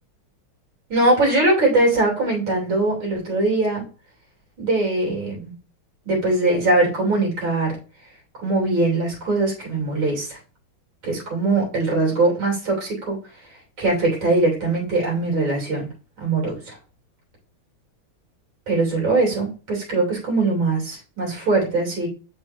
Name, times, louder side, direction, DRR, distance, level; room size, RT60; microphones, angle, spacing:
voice 1, 0.9-3.8 4.6-5.5 6.1-7.8 8.4-10.4 11.0-13.2 13.8-15.9 16.2-16.8 18.7-22.1, right 2 dB, 65° right, -2 dB, 3.8 m, -21 dB
7.2 x 5.1 x 2.6 m, 0.34 s
omnidirectional pair, 2.3 m